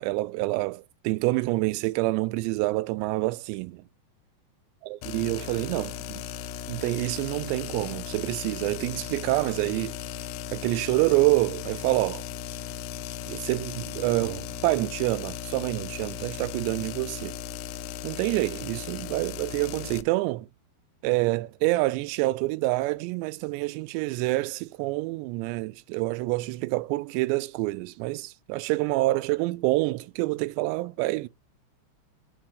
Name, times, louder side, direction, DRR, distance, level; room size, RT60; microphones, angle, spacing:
voice 1, 0.0-3.9 5.1-6.2 6.7-10.0 10.5-12.3 13.3-17.4 18.0-20.5 21.0-31.3, right 20 dB, 85° right, 2.7 m, -27 dB
sound 1, 5.0-20.0, left 9 dB, 90° left, 2.9 m, -37 dB
6.3 x 4.2 x 6.3 m
omnidirectional pair, 5.1 m